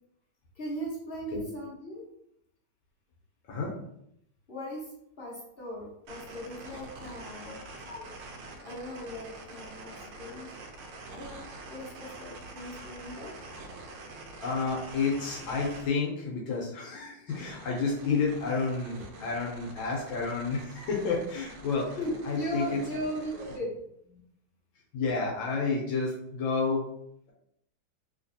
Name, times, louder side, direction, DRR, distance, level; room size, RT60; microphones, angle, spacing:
voice 1, 0.5-2.0 4.5-4.9 5.2-7.6 8.6-10.5 11.1-13.4 22.0-23.8 24.0-24.2, equal, 45° left, -7 dB, 0.7 m, -38 dB
sound 1, 6.1-15.9 17.3-23.6, right 2 dB, 80° right, 1.5 m, -46 dB
voice 2, 14.4-22.0 22.2-22.8 24.9-26.8, left 4 dB, 75° left, -2 dB, 1.4 m, -30 dB
3.2 x 3.1 x 2.6 m, 0.75 s
omnidirectional pair, 2.3 m